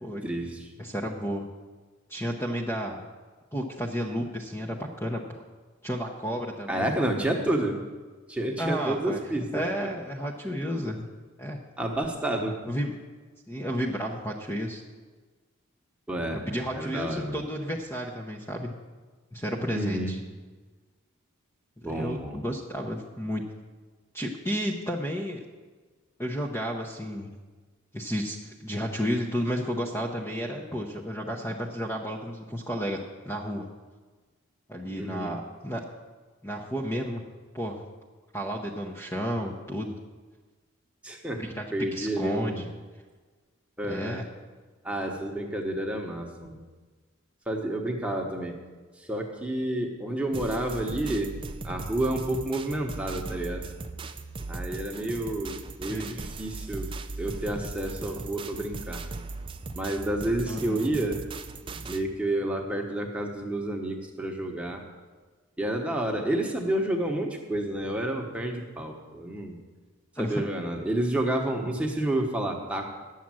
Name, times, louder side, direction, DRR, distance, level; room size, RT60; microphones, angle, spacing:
voice 1, 0.2-0.7 6.7-7.8 8.3-9.9 11.8-12.5 16.1-16.4 16.7-17.5 19.7-20.1 21.8-22.4 35.0-35.3 41.0-41.4 41.7-42.7 43.8-44.2 44.8-46.6 47.5-48.6 49.1-51.4 51.6-53.6 54.5-56.9 57.2-59.0 59.7-61.3 61.8-64.8 65.6-69.6 70.2-72.9, right 1 dB, 5° right, 1 dB, 1.1 m, -30 dB
voice 2, 0.8-1.5 2.1-3.0 3.5-5.4 5.8-6.9 8.6-11.1 11.4-11.6 12.7-13.0 13.5-14.8 16.3-18.7 19.3-20.2 21.9-23.4 24.1-25.4 26.2-27.3 27.9-33.0 33.2-33.7 34.7-35.8 36.4-37.2 37.5-37.8 38.3-40.0 41.4-42.6 43.9-44.2 55.9-56.1 60.5-60.8 70.2-70.4, equal, 10° left, -1 dB, 0.7 m, -32 dB
sound 1, 50.3-62.0, right 3 dB, 25° right, 0.4 m, -38 dB
9.9 x 7.3 x 7.7 m, 1.4 s
head